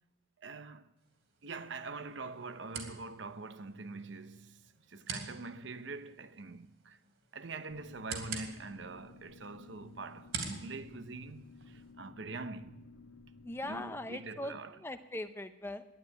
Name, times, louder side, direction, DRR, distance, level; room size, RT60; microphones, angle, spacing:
voice 1, 0.4-0.9 1.4-7.0 7.3-12.8 13.6-14.8, right 3 dB, 65° right, 0.8 m, -44 dB
sound 1, 1.0-11.9, right 5 dB, 85° right, 3.2 m, -47 dB
sound 2, 7.7-14.1, left 3 dB, 75° left, 1.3 m, -55 dB
voice 2, 13.4-15.9, left 1 dB, 10° left, 0.6 m, -40 dB
12.5 x 10.5 x 9.8 m
head